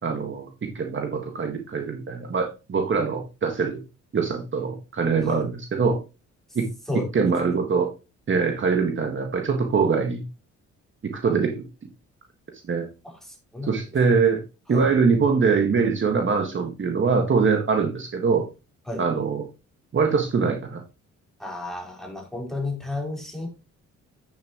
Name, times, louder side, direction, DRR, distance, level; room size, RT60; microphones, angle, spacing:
voice 1, 0.0-3.8 4.1-6.0 6.5-6.7 7.1-7.9 8.3-10.2 11.2-11.6 12.7-12.9 13.7-14.4 14.7-18.5 19.0-19.4 19.9-20.8, right 5 dB, 40° right, 3 dB, 1.7 m, -23 dB
voice 2, 13.0-13.7 14.7-14.9 18.9-19.0 21.4-23.5, left 2 dB, ahead, 0 dB, 4.1 m, -32 dB
8.8 x 7.3 x 3.0 m, 0.28 s
cardioid pair, 90°, 30 cm